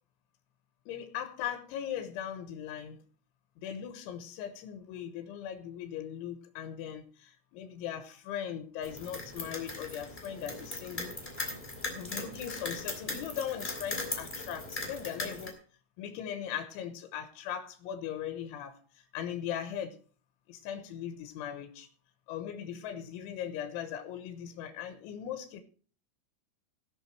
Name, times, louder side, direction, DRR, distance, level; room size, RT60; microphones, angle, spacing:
voice 1, 0.9-3.0 3.6-11.2 11.9-15.6 16.0-20.0 20.5-21.9 22.3-25.6, left 9 dB, 80° left, 8 dB, 3.4 m, -39 dB
sound 1, 8.8-15.5, left 2 dB, 15° left, 2.2 m, -39 dB
18.0 x 6.9 x 4.6 m, 0.41 s
omnidirectional pair, 5.5 m